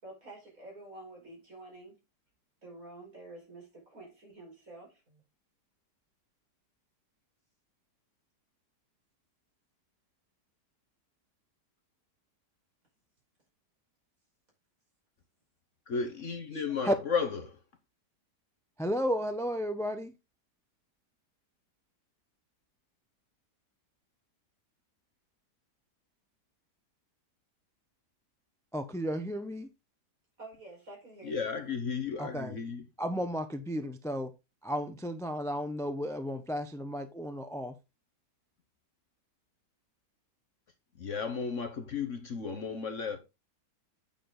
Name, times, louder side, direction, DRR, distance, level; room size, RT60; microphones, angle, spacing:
voice 1, 0.0-2.0 2.6-5.2 16.2-16.3 30.4-31.5 32.3-32.5, right 2 dB, 50° right, 5.5 m, -49 dB
voice 2, 15.9-17.6 31.2-32.8 40.9-43.2, left 5 dB, 50° left, 1.3 m, -34 dB
voice 3, 18.8-20.1 28.7-29.7 32.2-32.6 33.0-34.3 34.6-37.7, equal, 5° left, 0.5 m, -33 dB
8.5 x 7.0 x 3.9 m
omnidirectional pair, 1.8 m